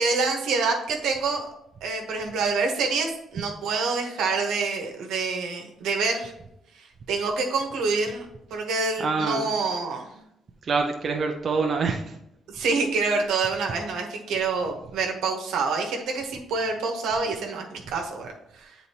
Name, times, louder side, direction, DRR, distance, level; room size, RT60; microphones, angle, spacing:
voice 1, 0.0-1.5 1.8-6.3 6.8-10.2 12.5-18.7, right 4 dB, 85° right, 2 dB, 1.1 m, -27 dB
voice 2, 9.0-9.5 10.6-12.2, right 4 dB, 50° right, 3 dB, 0.6 m, -26 dB
8.1 x 4.0 x 2.9 m, 0.82 s
cardioid pair, 90°, 0 cm